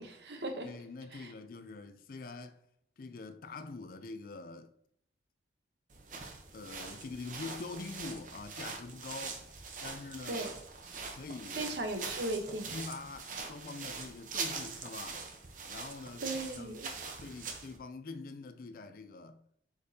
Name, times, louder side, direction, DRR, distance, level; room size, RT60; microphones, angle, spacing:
voice 1, 0.0-0.7 1.1-1.3 10.3-10.5 11.6-12.7 16.2-16.9, right 2 dB, 70° right, 1.0 m, -37 dB
voice 2, 0.6-2.7 3.0-4.7 6.5-9.4 9.8-10.5 11.1-11.7 12.7-15.3 15.7-16.2 16.5-16.8 17.2-19.4, left 3 dB, 50° left, 0.4 m, -44 dB
sound 1, 5.9-17.8, right 4 dB, 45° right, 0.9 m, -43 dB
8.1 x 5.1 x 2.8 m
head